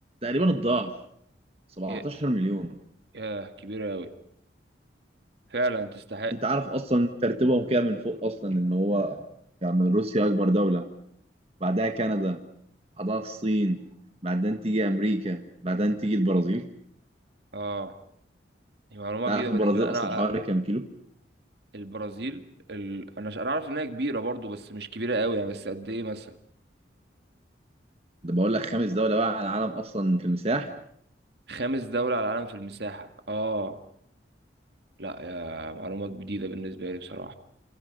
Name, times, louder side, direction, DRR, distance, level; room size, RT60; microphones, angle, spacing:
voice 1, 0.2-0.9 1.8-2.7 6.3-9.2 9.6-10.8 11.6-12.4 13.0-13.8 14.2-16.6 19.3-20.9 28.2-30.7, right 1 dB, 35° right, 5 dB, 1.5 m, -26 dB
voice 2, 3.1-4.1 5.5-6.4 17.5-17.9 18.9-20.3 21.7-26.3 31.5-33.8 35.0-37.3, right 2 dB, 60° right, 7 dB, 2.1 m, -32 dB
28.5 x 28.0 x 5.5 m, 0.69 s
head